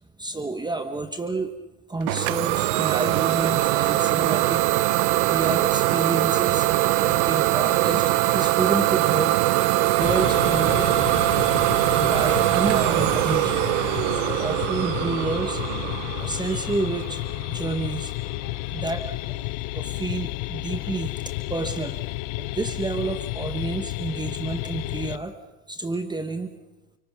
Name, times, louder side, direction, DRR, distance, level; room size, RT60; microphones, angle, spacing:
voice 1, 0.2-1.5 1.9-4.6 5.2-9.4 9.9-11.0 11.9-13.6 14.1-15.6 16.2-17.2 17.5-18.1 18.4-19.5 19.7-21.2 21.5-22.0 22.4-25.3 25.7-26.5, right 3 dB, 10° right, 7 dB, 1.3 m, -30 dB
Idling / Domestic sounds home sounds, 2.1-17.6, right 17 dB, 90° right, 0.8 m, -22 dB
sound 1, 10.0-25.2, left 19 dB, 70° left, 0.9 m, -31 dB
28.0 x 24.5 x 6.1 m, 1.1 s
cardioid pair, 125°, 34 cm